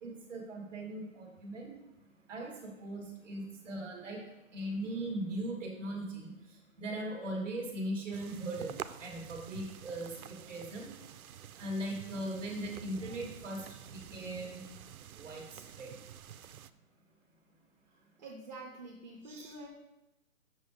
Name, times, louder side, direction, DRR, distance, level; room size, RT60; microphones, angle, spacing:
voice 1, 0.0-1.7 2.3-4.2 4.5-10.9 11.5-14.6 15.1-15.9 19.2-19.5, right 1 dB, 5° right, -1 dB, 1.5 m, -39 dB
sound 1, 8.1-16.7, right 9 dB, 85° right, 0.6 m, -49 dB
voice 2, 17.8-19.7, right 2 dB, 30° right, -1 dB, 0.8 m, -48 dB
6.4 x 6.2 x 4.9 m, 0.93 s
hypercardioid pair, 165°, 42 cm